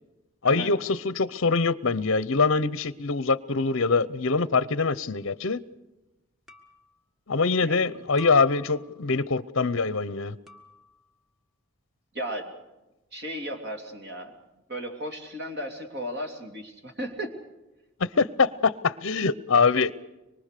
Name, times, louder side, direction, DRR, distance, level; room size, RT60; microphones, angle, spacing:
voice 1, 0.4-5.6 7.3-10.4 18.0-19.9, left 4 dB, 60° left, 18 dB, 0.7 m, -24 dB
sound 1, 5.1-5.3 6.5-7.0 8.2-9.1 10.5-11.1, left 2 dB, ahead, 1.8 m, -48 dB
voice 2, 12.1-12.5 13.1-14.3 14.7-17.3, equal, 50° right, 4 dB, 2.9 m, -35 dB
25.0 x 23.0 x 6.7 m, 1.0 s
head